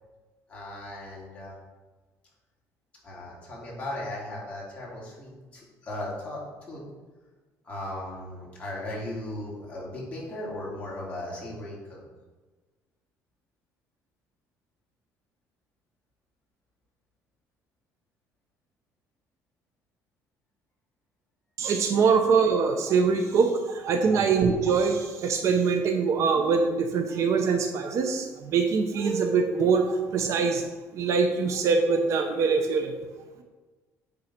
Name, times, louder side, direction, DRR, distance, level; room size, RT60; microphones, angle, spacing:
voice 1, 0.5-1.5 3.0-6.4 6.7-6.8 7.6-12.0 22.0-22.1 24.0-24.2, left 1 dB, 20° left, -5 dB, 2.7 m, -37 dB
voice 2, 21.6-30.6 30.9-32.9, right 5 dB, 50° right, 5 dB, 0.7 m, -23 dB
8.8 x 3.9 x 5.8 m, 1.3 s
cardioid pair, 155°, 6 cm